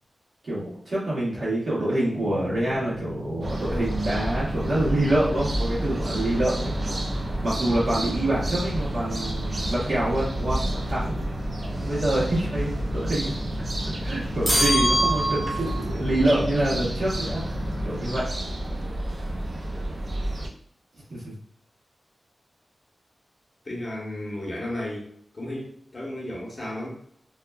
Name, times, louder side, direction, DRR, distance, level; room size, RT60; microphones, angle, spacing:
voice 1, 0.4-11.1 11.8-13.3 14.0-17.4 17.8-18.3 21.1-21.3, right 1 dB, 60° right, -8 dB, 1.3 m, -26 dB
sound 1, 2.2-18.2, equal, 65° left, 0.4 m, -37 dB
sound 2, 3.4-20.5, right 1 dB, 45° right, 0.4 m, -30 dB
sound 3, 14.4-15.8, equal, 15° right, 0.7 m, -23 dB
voice 2, 23.6-25.1 25.3-26.9, left 1 dB, 30° left, -4 dB, 0.9 m, -33 dB
2.8 x 2.2 x 2.3 m, 0.66 s
wide cardioid pair, 130°, 0 cm